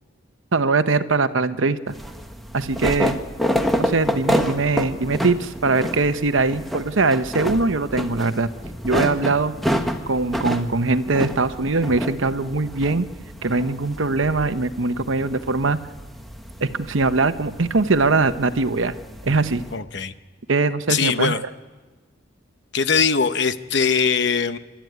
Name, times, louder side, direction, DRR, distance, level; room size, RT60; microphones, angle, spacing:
voice 1, 0.5-1.9 2.5-3.2 3.8-8.5 8.8-9.5 10.1-13.1 13.4-15.8 16.6-18.9 19.2-19.6 20.5-21.4, right 3 dB, 75° right, 11 dB, 0.9 m, -21 dB
sound 1, 1.9-19.7, equal, ahead, 1.2 m, -29 dB
voice 2, 19.7-20.1 20.9-21.4 22.7-24.6, left 6 dB, 60° left, 11 dB, 0.9 m, -21 dB
28.5 x 12.5 x 9.5 m, 1.3 s
head